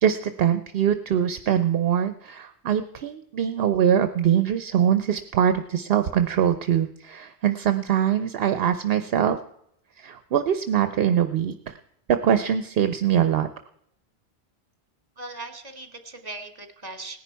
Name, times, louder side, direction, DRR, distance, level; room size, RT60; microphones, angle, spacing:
voice 1, 0.0-9.4 10.0-11.7 12.2-13.5, right 9 dB, 70° right, 10 dB, 0.9 m, -23 dB
voice 2, 15.2-17.2, right 2 dB, 40° right, 6 dB, 1.6 m, -39 dB
18.0 x 10.5 x 4.6 m, 0.74 s
omnidirectional pair, 1.1 m